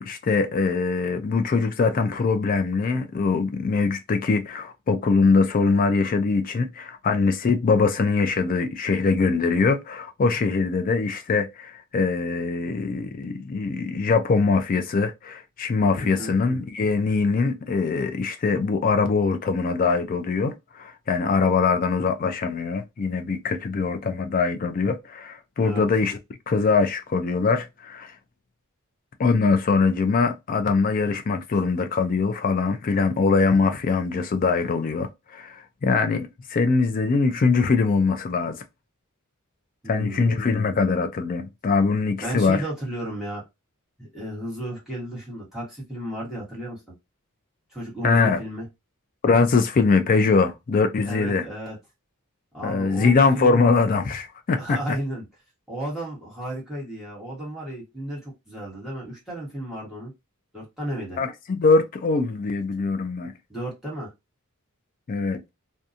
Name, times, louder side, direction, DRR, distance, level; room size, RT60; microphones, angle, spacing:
voice 1, 0.0-26.2 26.5-28.1 29.2-38.6 39.9-42.6 48.0-48.4 49.2-51.4 52.6-54.8 61.2-63.3 65.1-65.4, left 4 dB, 40° left, 0.3 m, -22 dB
voice 2, 15.9-16.3 25.6-25.9 39.8-40.4 42.2-43.4 44.0-46.8 47.7-48.7 51.1-51.8 52.5-53.6 54.6-55.2 55.7-60.1 60.5-61.2 63.5-64.1, right 1 dB, ahead, 1.1 m, -33 dB
2.7 x 2.2 x 2.4 m
head